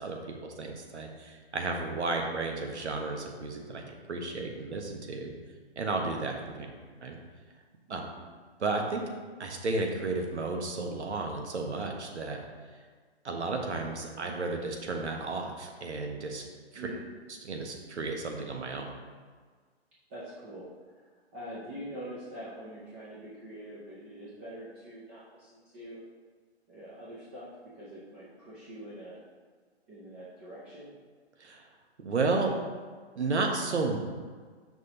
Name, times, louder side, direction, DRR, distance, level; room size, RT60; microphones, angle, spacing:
voice 1, 0.0-5.3 5.8-6.6 7.0-7.2 7.9-8.0 8.6-9.0 9.4-12.4 13.2-16.4 16.7-16.8 17.4-18.9 31.4-31.6 32.0-32.5 33.2-34.0, right 3 dB, 90° right, 2 dB, 1.2 m, -33 dB
voice 2, 7.9-8.2 16.8-17.0 20.1-26.0 26.7-29.2 29.9-31.0, equal, 10° right, -8 dB, 0.4 m, -45 dB
7.1 x 6.0 x 2.9 m, 1.5 s
hypercardioid pair, 150°, 33 cm